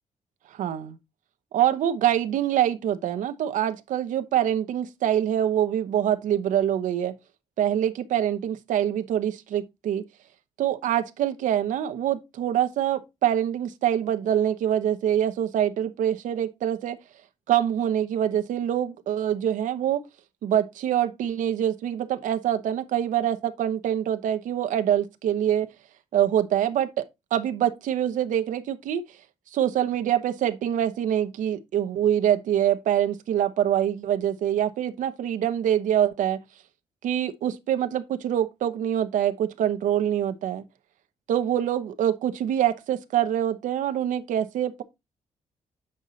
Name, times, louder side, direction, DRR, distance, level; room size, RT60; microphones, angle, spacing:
voice 1, 0.5-1.0 1.5-7.1 7.6-10.0 10.6-17.0 17.5-20.0 20.4-25.7 26.1-27.0 27.3-29.0 29.5-36.4 37.0-40.6 41.3-44.8, right 10 dB, 85° right, 1.0 m, -25 dB
8.0 x 5.5 x 4.0 m
wide cardioid pair, 160°, 13 cm